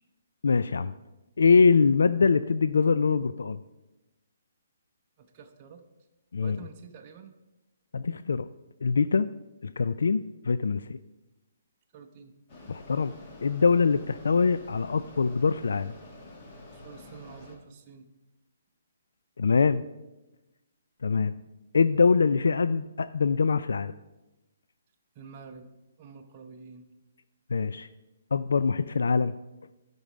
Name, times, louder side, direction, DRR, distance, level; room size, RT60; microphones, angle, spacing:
voice 1, 0.4-0.9 1.4-3.6 6.3-6.6 7.9-8.5 8.8-9.3 9.6-10.9 12.7-13.1 13.4-15.9 19.4-19.8 21.0-21.4 21.7-23.9 27.5-27.9 28.3-29.3, left 5 dB, 90° left, 13 dB, 0.3 m, -23 dB
voice 2, 5.2-5.8 6.4-7.3 11.9-12.3 16.7-18.1 25.1-25.7 26.0-26.9, right 5 dB, 25° right, 3 dB, 0.7 m, -48 dB
Mechanisms, 12.5-17.6, left 1 dB, 25° left, 1.5 m, -48 dB
12.5 x 5.4 x 5.0 m, 1.0 s
hypercardioid pair, 175°, 0 cm